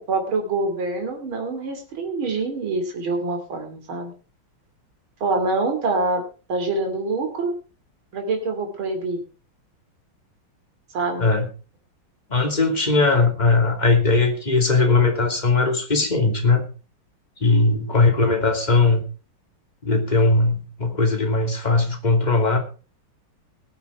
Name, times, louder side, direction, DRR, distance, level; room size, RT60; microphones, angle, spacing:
voice 1, 0.0-4.1 5.2-6.2 6.5-7.5 8.1-9.2 10.9-11.3, right 3 dB, 75° right, 3 dB, 3.7 m, -25 dB
voice 2, 12.3-16.6 17.4-19.0 19.8-22.6, left 3 dB, 20° left, 3 dB, 2.7 m, -19 dB
19.5 x 7.9 x 4.6 m, 0.34 s
omnidirectional pair, 2.3 m